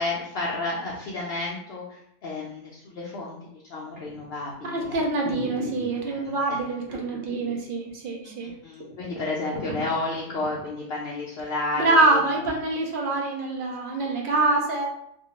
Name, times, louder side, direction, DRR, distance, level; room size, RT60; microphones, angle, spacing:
voice 1, 0.0-5.4 5.9-6.6 8.2-12.6, left 2 dB, 65° left, -3 dB, 0.7 m, -32 dB
sound 1, 4.0-4.4 4.8-4.9 5.2-6.3 6.9-7.6 7.9-8.0 8.5-8.6 8.8-10.7 11.1-11.2, right 1 dB, 80° right, 1.0 m, -35 dB
voice 2, 4.6-8.5 11.8-14.9, right 2 dB, 60° right, 0 dB, 0.6 m, -25 dB
2.5 x 2.2 x 2.8 m, 0.73 s
omnidirectional pair, 1.3 m